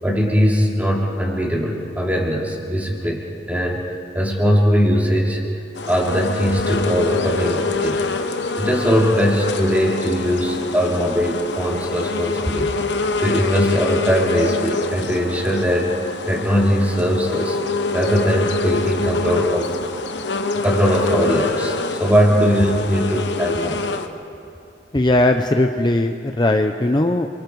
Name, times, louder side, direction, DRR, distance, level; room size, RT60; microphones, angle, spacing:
voice 1, 0.0-3.8 4.1-5.4 5.9-8.1 8.6-12.8 13.2-17.6 17.9-19.7 20.5-23.8, equal, 10° right, -2 dB, 3.2 m, -20 dB
sound 1, 5.8-24.1, left 3 dB, 80° left, 1.2 m, -25 dB
voice 2, 24.9-27.3, left 1 dB, 25° left, 5 dB, 0.7 m, -18 dB
28.0 x 24.5 x 4.7 m, 2.4 s
head